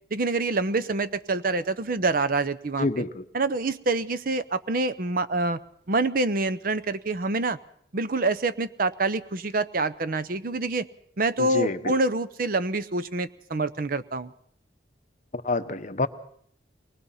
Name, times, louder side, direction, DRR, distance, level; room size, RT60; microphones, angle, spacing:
voice 1, 0.1-3.0 3.3-5.6 5.9-7.6 7.9-10.9 11.2-14.3, right 3 dB, 50° right, 13 dB, 0.7 m, -26 dB
voice 2, 2.8-3.2 11.4-12.0 15.3-16.1, left 2 dB, 45° left, 10 dB, 0.9 m, -27 dB
23.5 x 19.5 x 5.7 m, 0.65 s
head